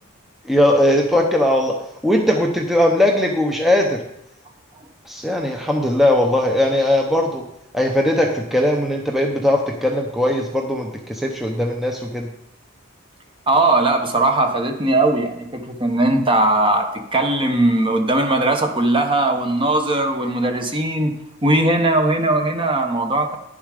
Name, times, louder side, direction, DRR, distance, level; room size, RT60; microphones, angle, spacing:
voice 1, 0.5-1.7 2.0-4.0 5.1-7.4 7.7-12.3, left 1 dB, ahead, 1 dB, 0.7 m, -19 dB
voice 2, 13.5-21.1 21.4-23.4, right 2 dB, 25° right, 5 dB, 1.0 m, -19 dB
10.5 x 7.1 x 4.9 m, 0.82 s
head